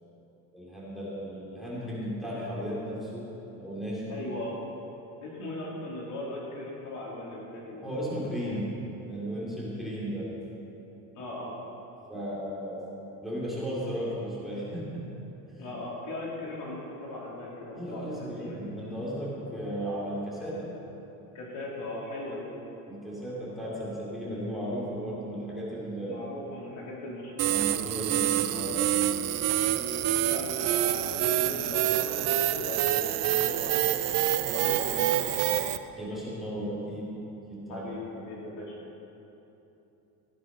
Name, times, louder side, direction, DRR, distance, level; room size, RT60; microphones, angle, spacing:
voice 1, 0.5-3.2 3.5-4.2 7.8-10.4 12.1-13.0 13.2-15.0 15.5-15.7 17.7-20.7 22.9-26.2 27.5-28.9 36.0-37.2 37.5-37.9, equal, ahead, -8 dB, 3.3 m, -35 dB
voice 2, 4.1-4.6 5.2-7.9 11.1-11.5 15.6-18.6 21.3-22.5 26.0-27.8 29.6-29.9 30.2-33.9 34.4-35.4 37.7-38.8, left 2 dB, 55° left, -4 dB, 3.4 m, -39 dB
sound 1, 27.4-35.8, right 12 dB, 45° right, 0.6 m, -27 dB
16.0 x 9.9 x 5.5 m, 3.0 s
cardioid pair, 145°, 36 cm